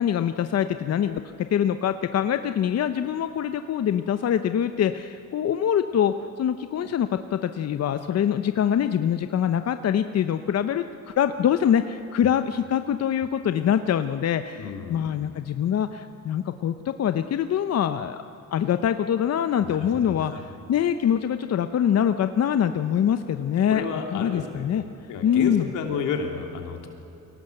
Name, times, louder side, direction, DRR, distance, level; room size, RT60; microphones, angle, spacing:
voice 1, 0.0-18.2 18.5-23.8 24.1-24.8 25.2-25.7, left 9 dB, 55° left, 9 dB, 0.8 m, -24 dB
voice 2, 14.6-15.1 19.6-20.4 23.7-24.7 25.1-26.9, left 6 dB, 90° left, 3 dB, 3.0 m, -32 dB
23.5 x 18.0 x 7.9 m, 2.7 s
cardioid pair, 90°, 30 cm